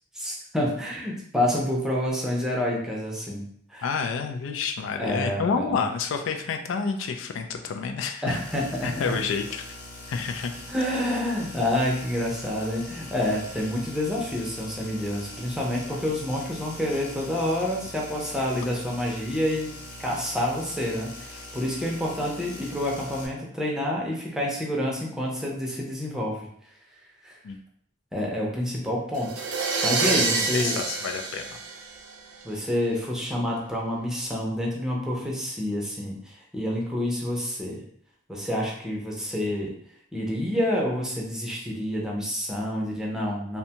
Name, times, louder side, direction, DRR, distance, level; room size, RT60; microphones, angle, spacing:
voice 1, 0.1-3.4 3.7-3.9 5.0-5.8 8.2-9.2 10.7-19.7 20.0-26.5 27.2-27.4 28.1-29.4 29.8-30.8 32.4-37.8 38.3-39.7 40.1-43.6, left 1 dB, 5° right, -3 dB, 0.5 m, -28 dB
voice 2, 3.8-8.4 8.8-9.6 10.1-10.5 27.4-27.6 30.0-30.1 30.5-31.6, left 5 dB, 90° left, 5 dB, 0.3 m, -29 dB
sound 1, 8.3-23.3, left 1 dB, 50° left, 0.8 m, -42 dB
sound 2, 29.1-32.4, right 4 dB, 85° right, 0.4 m, -27 dB
2.6 x 2.2 x 2.8 m, 0.65 s
head